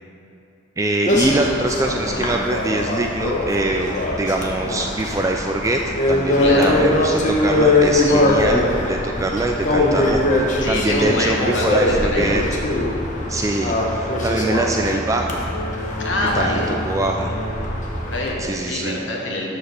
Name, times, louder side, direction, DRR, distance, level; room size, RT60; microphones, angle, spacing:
voice 1, 0.8-12.4 13.3-15.4 16.3-17.4 18.4-19.0, right 2 dB, 15° right, 2 dB, 0.3 m, -23 dB
sound 1, 1.1-18.3, left 1 dB, 45° left, 1.0 m, -21 dB
voice 2, 6.4-6.8 9.1-9.3 10.6-12.3 16.0-16.7 17.9-19.6, left 2 dB, 80° left, -2 dB, 1.2 m, -25 dB
12.5 x 4.8 x 3.4 m, 2.7 s
head